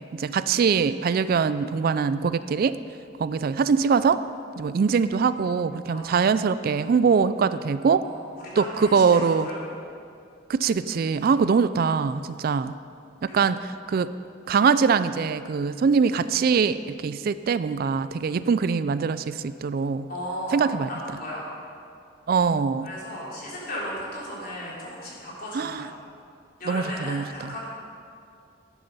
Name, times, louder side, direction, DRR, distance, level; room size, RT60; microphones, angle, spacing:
voice 1, 0.1-2.8 3.2-4.2 4.6-8.0 8.6-9.5 10.5-12.7 13.2-14.1 14.5-20.1 20.5-20.9 22.3-22.9 25.5-25.9 26.7-27.5, right 5 dB, 50° right, 13 dB, 0.3 m, -23 dB
voice 2, 8.6-9.7 13.3-13.5 20.1-21.5 22.8-25.9 26.6-27.7, equal, 50° left, -6 dB, 3.7 m, -35 dB
12.0 x 10.0 x 5.4 m, 2.4 s
head